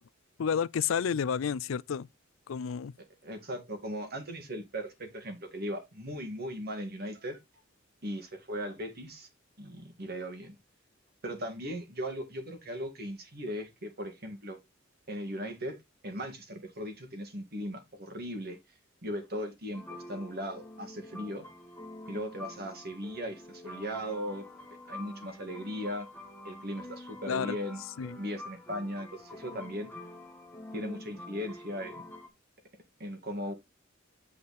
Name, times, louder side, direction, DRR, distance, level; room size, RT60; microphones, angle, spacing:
voice 1, 0.4-2.1 2.5-2.9 27.3-27.6 28.0-28.1, left 7 dB, 75° left, 0.4 m, -30 dB
voice 2, 3.0-7.4 8.0-9.3 9.6-10.6 11.2-14.6 15.1-15.8 16.0-18.6 19.0-21.5 22.1-24.4 24.9-26.1 26.4-27.8 28.2-29.9 30.7-32.0 33.0-33.5, equal, 50° right, 2.2 m, -38 dB
sound 1, 19.7-32.3, left 1 dB, 10° left, 1.3 m, -47 dB
8.6 x 4.8 x 4.2 m
head